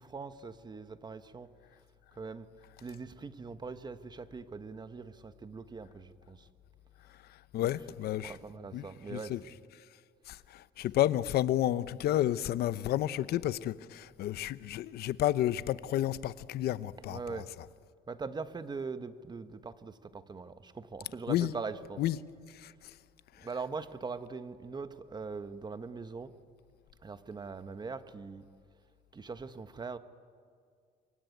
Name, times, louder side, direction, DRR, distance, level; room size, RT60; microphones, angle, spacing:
voice 1, 0.0-1.5 2.2-2.5 2.8-6.5 7.6-8.0 8.2-9.5 17.0-17.5 18.1-22.1 23.4-26.3 27.0-28.4 29.1-30.0, right 4 dB, 25° right, 1.3 m, -42 dB
voice 2, 7.5-8.3 8.7-9.4 10.3-17.2 21.3-21.5 22.0-22.2 22.6-22.7, left 13 dB, 70° left, 0.8 m, -31 dB
27.0 x 23.5 x 9.4 m
cardioid pair, 110°, 17 cm